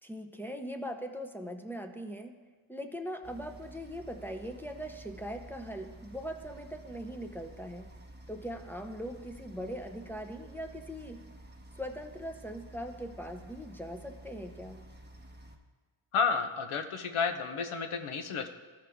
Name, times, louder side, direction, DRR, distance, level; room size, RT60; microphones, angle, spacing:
voice 1, 0.0-2.3 2.7-7.9 8.3-11.2 11.8-14.9, equal, 5° left, 4 dB, 0.6 m, -40 dB
sound 1, 3.2-15.6, right 1 dB, 20° right, 0.9 m, -51 dB
voice 2, 16.1-18.5, left 5 dB, 80° left, 6 dB, 0.8 m, -31 dB
13.5 x 4.9 x 3.5 m, 1.4 s
wide cardioid pair, 75°, 49 cm